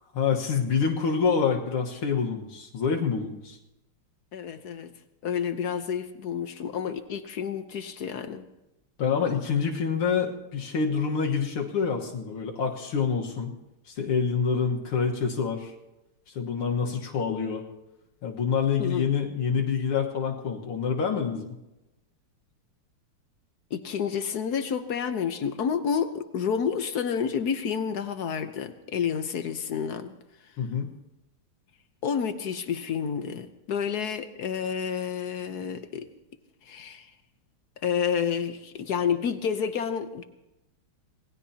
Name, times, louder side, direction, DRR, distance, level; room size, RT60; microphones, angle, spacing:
voice 1, 0.1-3.6 9.0-13.5 13.9-15.7 16.3-17.6 18.2-21.6 30.6-30.9, left 6 dB, 75° left, 0 dB, 2.3 m, -27 dB
voice 2, 4.3-4.9 5.2-8.4 18.8-19.1 23.7-30.1 32.0-36.1 36.6-37.1 37.8-40.2, left 7 dB, 60° left, 9 dB, 1.1 m, -29 dB
27.0 x 19.0 x 2.8 m, 0.96 s
omnidirectional pair, 2.4 m